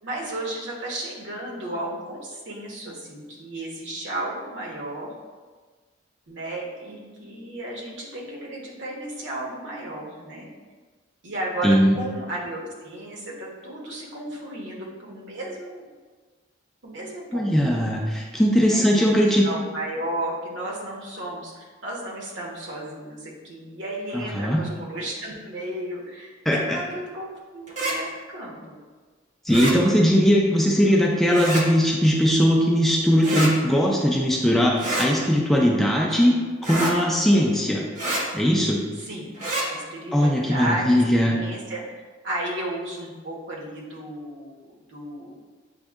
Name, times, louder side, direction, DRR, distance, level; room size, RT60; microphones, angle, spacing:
voice 1, 0.0-5.1 6.3-10.5 11.2-15.9 16.8-17.7 18.7-28.7 35.7-36.2 38.9-39.3 39.6-45.4, right 1 dB, 70° right, -3 dB, 1.1 m, -34 dB
voice 2, 11.6-11.9 17.3-19.5 24.4-24.6 26.5-26.8 29.5-36.3 36.7-37.8 38.3-38.8 40.1-41.4, equal, ahead, -2 dB, 0.4 m, -19 dB
sound 1, 27.7-28.0 29.5-29.8 31.3-31.6 33.2-33.5 34.8-35.1 36.6-36.9 38.0-38.2 39.3-39.7, right 1 dB, 40° right, 0.8 m, -26 dB
7.7 x 2.6 x 2.4 m, 1.4 s
head